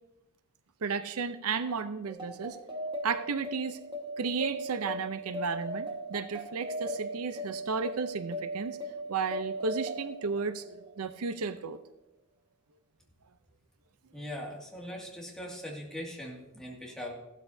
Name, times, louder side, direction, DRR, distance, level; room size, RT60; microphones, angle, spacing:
voice 1, 0.8-2.6 3.0-3.8 4.2-8.8 9.1-11.8, right 5 dB, 90° right, 11 dB, 0.6 m, -33 dB
sound 1, 2.1-11.1, right 1 dB, 25° right, 1.5 m, -38 dB
voice 2, 14.1-17.1, equal, 5° left, -2 dB, 2.1 m, -40 dB
15.5 x 12.5 x 2.7 m, 0.94 s
head